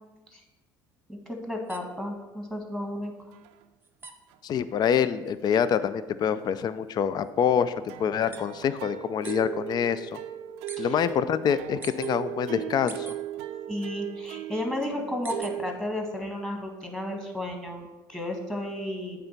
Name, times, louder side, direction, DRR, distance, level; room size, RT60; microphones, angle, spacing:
voice 1, 1.1-3.1 10.8-11.0 13.7-19.3, left 1 dB, 5° left, 2 dB, 1.7 m, -33 dB
sound 1, 1.6-9.5 9.8-10.8 11.1-12.1 12.6-13.7 14.1-15.8 16.1-17.4, right 4 dB, 20° right, 0.9 m, -47 dB
sound 2, 3.0-3.1 3.3-3.6 4.3-4.4 4.8-4.9 5.3-5.8 7.8-15.7, right 13 dB, 70° right, 0.4 m, -38 dB
voice 2, 4.4-10.2 10.8-13.1, left 8 dB, 40° left, 14 dB, 0.4 m, -26 dB
8.6 x 3.5 x 5.8 m, 1.1 s
hypercardioid pair, 70°, 11 cm